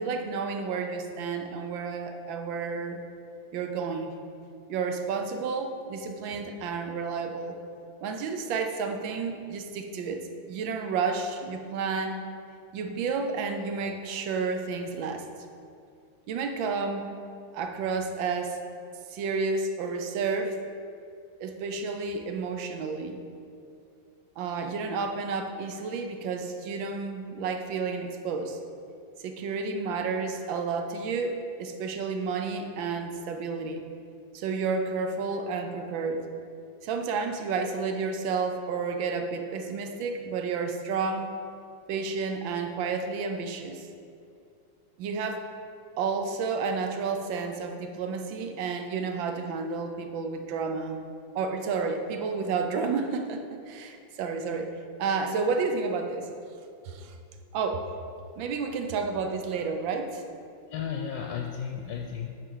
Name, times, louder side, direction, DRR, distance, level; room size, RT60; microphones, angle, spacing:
voice 1, 0.0-3.0 3.5-4.2 4.7-7.6 8.0-12.2 12.7-15.2 16.3-17.2 17.5-18.6 19.1-20.6 21.4-23.2 24.4-28.6 29.2-33.8 34.3-36.3 36.8-41.4 41.9-43.9 45.0-45.5 46.0-51.0 51.3-56.3 56.8-57.2 57.5-57.9 58.4-60.2, right 4 dB, 70° right, 6 dB, 1.4 m, -31 dB
voice 2, 60.7-62.3, left 7 dB, 75° left, 3 dB, 1.2 m, -34 dB
9.3 x 4.6 x 6.3 m, 2.4 s
omnidirectional pair, 2.3 m